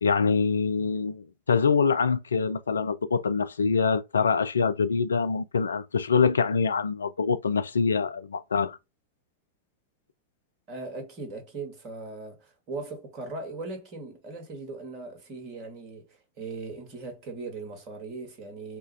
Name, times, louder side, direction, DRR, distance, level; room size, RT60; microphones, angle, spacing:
voice 1, 0.0-8.8, left 5 dB, 70° left, 0.4 m, -25 dB
voice 2, 10.7-18.8, right 3 dB, 40° right, 1.7 m, -39 dB
4.4 x 2.4 x 3.2 m
figure-of-eight pair, 90°, 0 cm